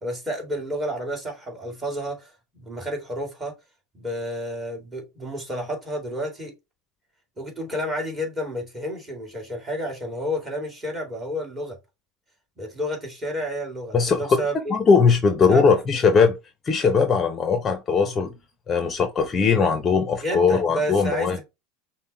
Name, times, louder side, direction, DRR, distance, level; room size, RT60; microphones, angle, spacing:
voice 1, 0.0-3.5 3.9-6.5 7.4-11.8 12.6-14.6 15.5-15.7 20.2-21.4, equal, 15° right, 2.3 m, -30 dB
voice 2, 13.9-16.4 16.6-18.3 18.7-21.4, left 5 dB, 25° left, 0.7 m, -20 dB
5.6 x 2.2 x 4.1 m
supercardioid pair, 120°, 0 cm